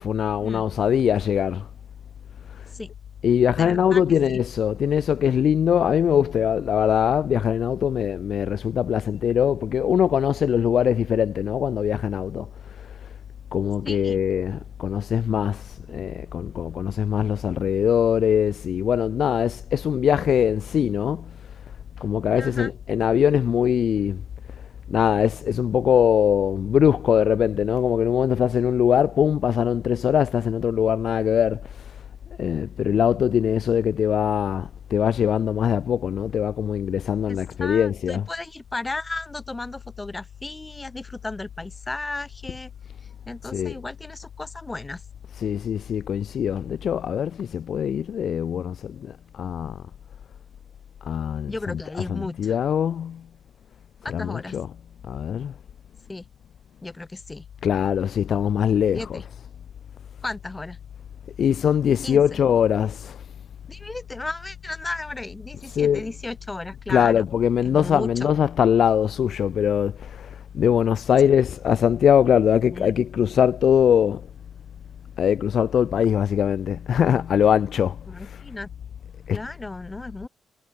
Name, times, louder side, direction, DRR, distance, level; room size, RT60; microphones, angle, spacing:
voice 1, 0.0-1.7 2.5-2.7 3.2-13.1 13.5-21.3 22.0-24.2 24.9-32.0 32.4-38.3 43.4-43.8 45.3-49.8 51.0-53.2 54.0-54.7 55.1-55.5 57.6-59.3 61.4-63.2 65.6-66.1 66.9-74.3 75.2-78.4 79.3-79.4, left 8 dB, 60° left, 0.5 m, -22 dB
voice 2, 3.6-4.0 4.3-4.4 13.8-14.2 15.9-16.0 22.4-22.7 37.3-42.7 43.3-45.0 51.5-52.6 54.0-54.6 56.1-56.3 56.8-57.5 58.9-59.2 60.2-60.8 62.0-62.4 63.7-67.3 67.6-68.3 71.2-71.3 72.7-72.9 78.1-78.7 79.3-80.3, left 2 dB, 15° left, 4.1 m, -34 dB
cardioid pair, 90°, 0 cm